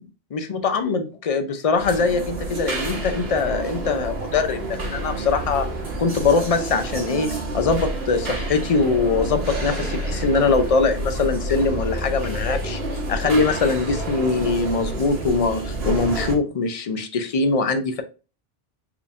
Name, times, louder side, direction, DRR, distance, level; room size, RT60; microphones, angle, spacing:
voice 1, 0.3-5.7 6.0-7.3 7.5-12.8 13.1-18.0, left 4 dB, 45° left, 0.5 m, -22 dB
sound 1, 1.8-16.3, right 1 dB, 75° right, 1.5 m, -29 dB
4.7 x 3.5 x 2.4 m
omnidirectional pair, 1.1 m